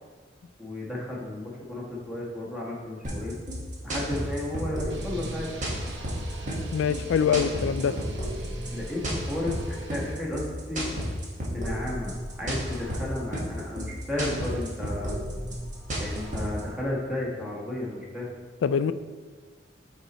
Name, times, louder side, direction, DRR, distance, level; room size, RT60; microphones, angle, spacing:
voice 1, 0.6-3.4 3.8-5.5 7.2-7.5 7.8-7.9 8.7-10.9 11.4-12.1 12.4-15.2 16.0-18.3, left 1 dB, 5° right, -4 dB, 1.3 m, -33 dB
sound 1, 3.0-16.6, equal, 40° right, 1.4 m, -32 dB
sound 2, 4.9-10.2, right 3 dB, 70° right, 0.8 m, -42 dB
voice 2, 6.7-7.9 18.6-18.9, left 7 dB, 75° left, 13 dB, 0.3 m, -24 dB
7.3 x 4.2 x 4.1 m, 1.5 s
head